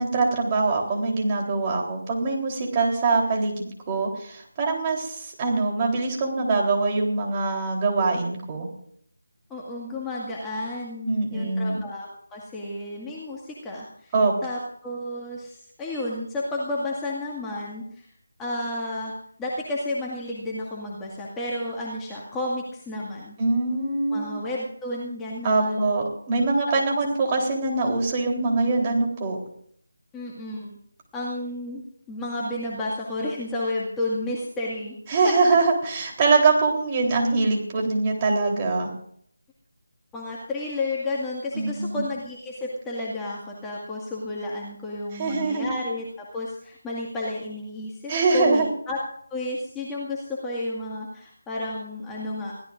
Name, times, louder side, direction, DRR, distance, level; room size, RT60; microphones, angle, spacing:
voice 1, 0.0-8.7 11.1-11.8 14.1-14.3 23.4-24.3 25.4-29.4 35.1-38.9 41.5-42.0 45.1-45.7 48.1-48.7, right 3 dB, 20° right, 0 dB, 3.8 m, -23 dB
voice 2, 9.5-14.1 14.4-18.1 18.4-23.4 24.1-25.9 30.1-30.8 31.1-35.0 35.2-35.6 40.1-49.0 49.3-52.5, left 1 dB, 10° left, -5 dB, 2.0 m, -32 dB
23.0 x 16.5 x 2.6 m, 0.63 s
figure-of-eight pair, 165°, 0 cm